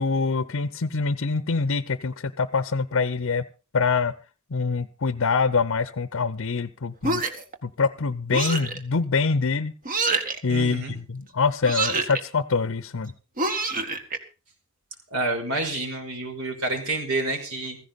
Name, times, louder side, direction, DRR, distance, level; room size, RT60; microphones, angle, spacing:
voice 1, 0.0-3.4 3.7-4.1 4.5-7.2 7.6-9.7 10.4-13.1, left 4 dB, 60° left, 14 dB, 0.7 m, -25 dB
sound 1, 7.0-7.6 8.3-8.8 9.9-10.4 11.6-12.2 13.4-14.2, right 3 dB, 40° right, 1.7 m, -26 dB
voice 2, 10.5-10.9 15.1-17.8, right 2 dB, 70° right, 4 dB, 5.4 m, -28 dB
15.5 x 15.5 x 4.1 m, 0.34 s
head